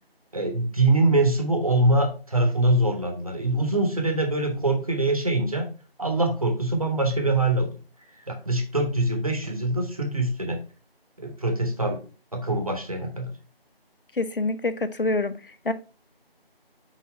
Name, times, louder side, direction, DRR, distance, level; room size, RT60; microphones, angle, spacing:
voice 1, 0.3-5.7 6.0-7.7 8.3-10.6 11.2-12.0 12.3-13.3, right 2 dB, 35° right, 4 dB, 1.1 m, -23 dB
voice 2, 14.1-15.7, left 2 dB, 60° left, 13 dB, 0.7 m, -26 dB
6.0 x 4.0 x 4.1 m, 0.35 s
figure-of-eight pair, 170°, 31 cm